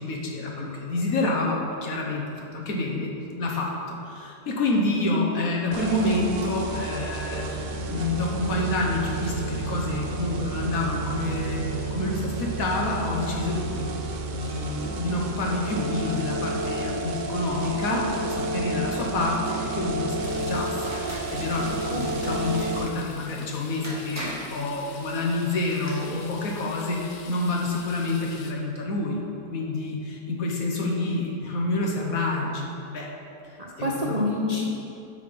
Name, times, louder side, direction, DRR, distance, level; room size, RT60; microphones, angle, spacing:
voice 1, 0.0-3.1 3.4-13.9 14.3-20.7 21.0-29.2 29.5-33.1 33.4-34.1, left 2 dB, 65° left, -1 dB, 1.5 m, -28 dB
sound 1, 5.7-22.8, right 3 dB, 85° right, 0.4 m, -31 dB
sound 2, 20.2-28.5, left 5 dB, 85° left, 1.3 m, -46 dB
sound 3, 20.8-21.3 23.4-23.5 23.8-24.6 25.5-25.9, equal, 10° right, 1.7 m, -36 dB
voice 2, 21.9-22.6 33.6-34.6, left 1 dB, 40° right, -3 dB, 0.6 m, -28 dB
8.4 x 5.9 x 5.6 m, 2.6 s
omnidirectional pair, 1.7 m